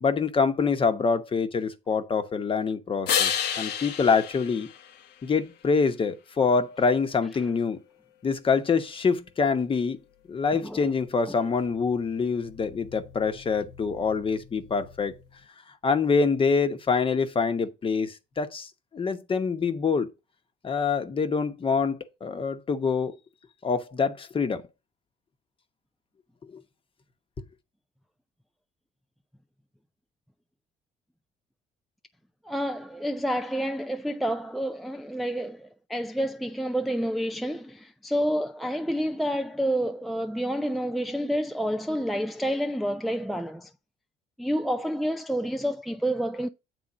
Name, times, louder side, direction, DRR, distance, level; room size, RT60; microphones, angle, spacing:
voice 1, 0.0-4.7 5.2-7.8 8.2-10.0 10.3-15.2 15.8-20.1 20.6-23.1 23.6-24.6 26.5-26.6, left 5 dB, 30° left, 1.1 m, -25 dB
sound 1, 3.1-5.6 11.4-15.4, left 8 dB, 80° left, 1.1 m, -33 dB
voice 2, 32.4-43.7 44.4-46.5, equal, ahead, 0.4 m, -29 dB
8.6 x 3.6 x 5.1 m
cardioid pair, 110°, 17 cm